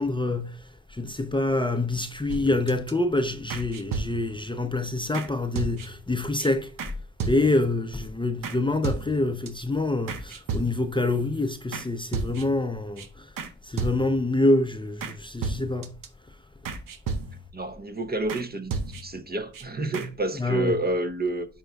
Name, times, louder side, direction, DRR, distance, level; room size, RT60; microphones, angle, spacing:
voice 1, 0.0-6.7 7.2-13.3 13.6-16.0 20.3-20.8, left 2 dB, 15° left, 0.6 m, -26 dB
sound 1, 2.3-2.9 3.5-4.4 5.1-5.3 5.6-6.1 6.4-6.5 6.8-6.9 7.2-7.7 8.4-8.6 8.8-9.5 10.1-11.0 11.7-11.9 12.1-12.7 13.0-13.1 13.4-13.5 13.8-14.3 15.0-15.1 15.4-16.1 16.6-17.6 18.3-18.4 18.7-19.2 19.5-19.6 19.9-20.1, right 4 dB, 80° right, 0.8 m, -33 dB
voice 2, 17.5-21.5, right 2 dB, 30° right, 0.9 m, -29 dB
10.5 x 4.5 x 2.3 m
cardioid pair, 55°, 32 cm